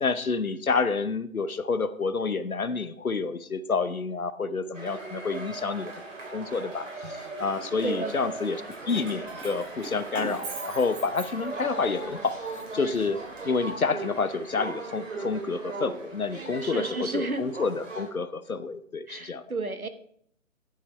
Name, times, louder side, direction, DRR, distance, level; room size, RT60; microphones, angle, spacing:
voice 1, 0.0-5.9 6.3-12.4 12.7-19.4, left 4 dB, 90° left, 14 dB, 0.8 m, -29 dB
sound 1, 4.7-18.1, right 3 dB, 60° right, 3.5 m, -38 dB
voice 2, 7.8-8.1 16.6-17.4 19.1-19.9, right 3 dB, 90° right, 10 dB, 1.1 m, -32 dB
Keys jangling, 8.6-11.8 12.2-13.5, right 2 dB, 35° right, 4.6 m, -41 dB
11.0 x 5.8 x 4.6 m, 0.67 s
figure-of-eight pair, 135°, 41 cm